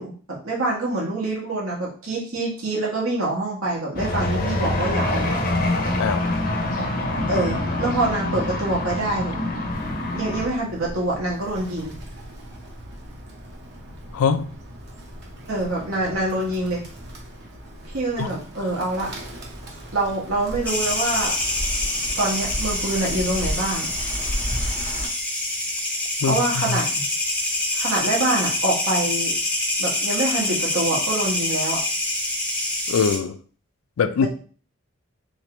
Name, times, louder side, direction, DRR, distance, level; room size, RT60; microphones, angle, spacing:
voice 1, 0.0-5.3 7.3-9.4 10.1-12.0 15.5-16.8 17.9-19.1 19.9-21.4 22.2-23.9 26.3-26.9 27.7-29.4 29.8-31.8 34.2-34.3, right 2 dB, 80° right, -3 dB, 1.3 m, -25 dB
sound 1, 3.9-10.5, left 2 dB, 40° left, 0.6 m, -25 dB
Bird, 9.7-25.1, equal, 50° right, 0.8 m, -35 dB
voice 2, 14.1-14.5 18.2-18.3 26.2-26.8 32.9-33.4 34.0-34.3, left 6 dB, 85° left, 10 dB, 0.4 m, -22 dB
sound 2, 20.6-33.2, left 1 dB, 5° left, 0.6 m, -26 dB
3.4 x 3.2 x 2.9 m, 0.41 s
head